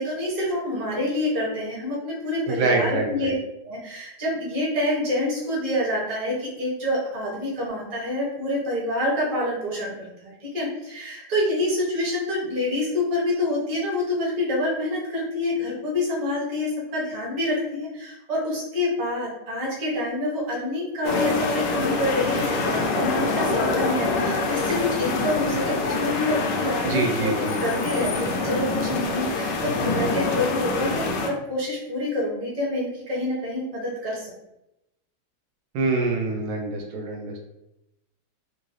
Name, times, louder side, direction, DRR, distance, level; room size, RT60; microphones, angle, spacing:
voice 1, 0.0-3.3 3.6-34.3, left 1 dB, 25° right, -6 dB, 0.9 m, -27 dB
voice 2, 2.5-3.3 26.8-27.6 35.7-37.4, right 3 dB, 80° right, 1 dB, 1.3 m, -25 dB
sound 1, 21.0-31.3, left 3 dB, 70° left, 1.1 m, -25 dB
3.6 x 2.6 x 3.1 m, 0.88 s
omnidirectional pair, 2.2 m